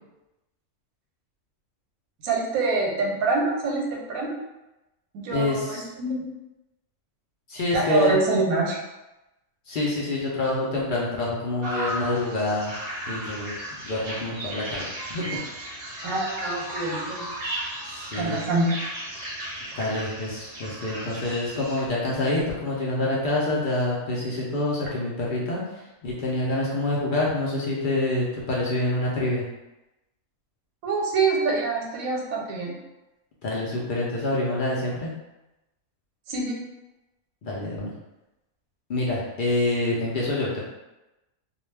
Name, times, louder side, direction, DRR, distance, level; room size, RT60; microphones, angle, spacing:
voice 1, 2.2-4.3 5.1-6.3 7.7-8.8 16.0-17.3 18.1-18.8 30.8-32.7 36.3-36.6, right 3 dB, 85° right, -1 dB, 1.1 m, -25 dB
voice 2, 5.3-5.9 7.5-8.1 9.7-12.7 13.1-13.5 13.8-15.4 17.9-18.4 19.8-29.4 33.4-35.1 37.4-37.9 38.9-40.6, left 2 dB, 65° left, -5 dB, 0.5 m, -27 dB
sound 1, 11.6-21.8, right 1 dB, 50° right, 0.7 m, -35 dB
2.3 x 2.2 x 3.2 m, 0.99 s
omnidirectional pair, 1.5 m